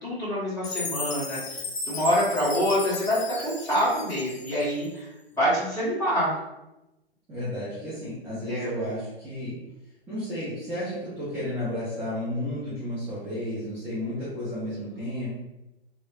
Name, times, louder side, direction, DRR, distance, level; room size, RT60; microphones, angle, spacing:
voice 1, 0.0-1.6 1.9-5.1 5.4-6.3 8.4-8.7, equal, 10° left, -9 dB, 1.1 m, -26 dB
Chime, 0.6-4.9, left 3 dB, 75° left, 0.5 m, -35 dB
voice 2, 7.3-9.6 10.1-15.3, left 1 dB, 5° right, -10 dB, 0.5 m, -32 dB
3.0 x 2.0 x 2.5 m, 0.95 s
figure-of-eight pair, 115°, 31 cm